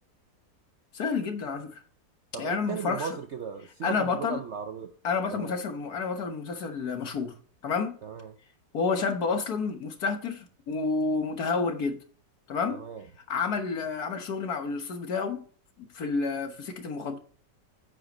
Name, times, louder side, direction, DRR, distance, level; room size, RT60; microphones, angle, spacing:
voice 1, 0.9-1.8 2.4-3.1 3.8-4.4 5.0-7.4 7.6-8.0 8.7-12.0 12.5-12.8 13.3-15.4 15.8-17.2, left 4 dB, 60° left, 1.7 m, -30 dB
voice 2, 2.3-4.9 5.3-5.6 8.0-8.3 12.7-13.1, right 6 dB, 60° right, 0.7 m, -37 dB
8.8 x 7.7 x 3.0 m
omnidirectional pair, 1.9 m